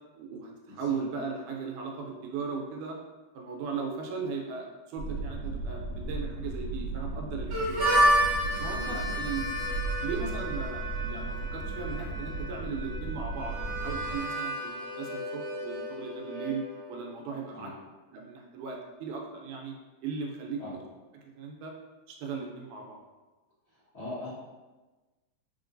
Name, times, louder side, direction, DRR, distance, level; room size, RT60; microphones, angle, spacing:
voice 1, 0.1-3.0 3.4-8.1 8.5-9.5 10.0-16.6 16.9-17.7 18.1-19.7 20.0-20.6 21.4-21.7 22.1-23.0, right 5 dB, 80° right, 0 dB, 2.1 m, -37 dB
sound 1, 5.0-14.2, right 3 dB, 65° left, 1.3 m, -36 dB
Harmonica, 7.5-17.1, equal, 65° right, 1.1 m, -31 dB
voice 2, 23.9-24.3, left 2 dB, 85° left, -13 dB, 0.6 m, -40 dB
4.2 x 3.7 x 2.6 m, 1.2 s
omnidirectional pair, 3.6 m